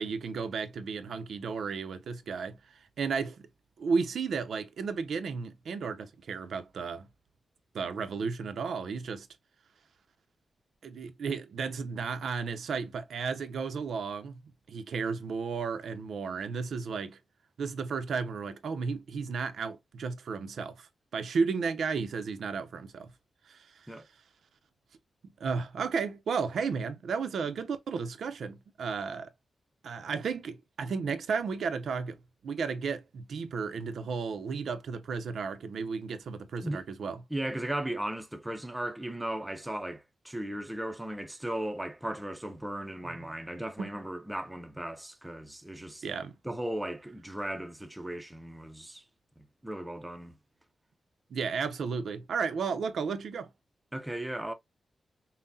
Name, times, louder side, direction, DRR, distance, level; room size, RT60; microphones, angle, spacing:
voice 1, 0.0-2.6 3.0-3.5 3.8-7.1 7.7-9.3 10.8-14.4 14.7-17.2 17.6-23.1 23.5-23.7 25.4-29.3 29.8-32.2 32.4-37.2 43.0-43.3 43.8-44.0 46.0-46.3 51.3-53.5, right 5 dB, 80° right, 0.6 m, -33 dB
voice 2, 37.3-46.1 46.4-49.0 49.6-50.3 53.9-54.5, right 1 dB, 5° right, 0.5 m, -36 dB
5.6 x 2.1 x 2.6 m
wide cardioid pair, 155°, 0 cm